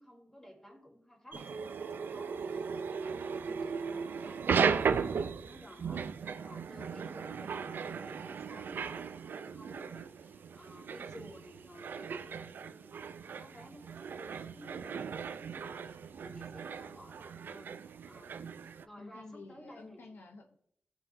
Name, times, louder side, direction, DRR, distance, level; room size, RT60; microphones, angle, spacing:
voice 1, 0.0-5.0 5.4-17.7 18.0-20.0, equal, 20° left, -3 dB, 3.5 m, -54 dB
sound 1, 1.3-18.8, right 6 dB, 90° right, 0.5 m, -37 dB
voice 2, 19.0-20.6, left 3 dB, 80° left, 4 dB, 0.8 m, -50 dB
16.5 x 5.9 x 2.7 m, 0.72 s
wide cardioid pair, 120°, 3 cm